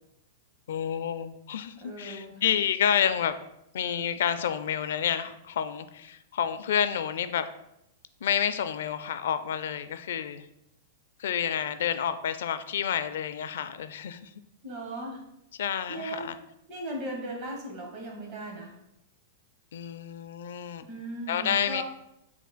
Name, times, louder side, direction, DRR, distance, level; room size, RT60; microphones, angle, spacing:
voice 1, 0.7-3.3 3.7-7.5 8.2-10.5 11.2-14.3 15.6-16.4 19.7-20.9 21.3-21.8, left 8 dB, 75° left, 11 dB, 0.4 m, -29 dB
voice 2, 1.8-2.4 14.6-15.2 15.9-16.3 16.7-18.8 20.8-21.8, right 1 dB, 35° right, -1 dB, 1.4 m, -37 dB
7.3 x 3.3 x 2.2 m, 0.83 s
supercardioid pair, 155°, 0 cm